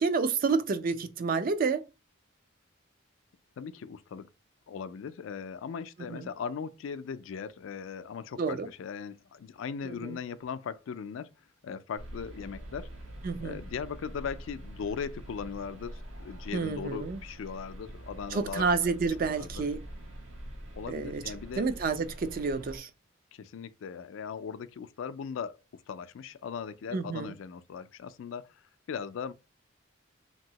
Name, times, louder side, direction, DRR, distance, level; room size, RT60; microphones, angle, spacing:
voice 1, 0.0-1.8 6.1-6.3 8.4-8.7 9.8-10.2 13.2-13.6 16.5-17.2 18.3-19.8 20.9-21.2 21.6-22.9 26.9-27.3, right 4 dB, 45° right, 0.4 m, -29 dB
voice 2, 3.6-4.3 4.7-11.3 11.6-12.9 13.4-18.7 19.2-19.7 20.7-21.7 23.3-29.3, left 6 dB, 75° left, 0.3 m, -39 dB
sound 1, 12.0-22.8, right 1 dB, 75° right, 1.1 m, -45 dB
2.9 x 2.6 x 2.8 m
head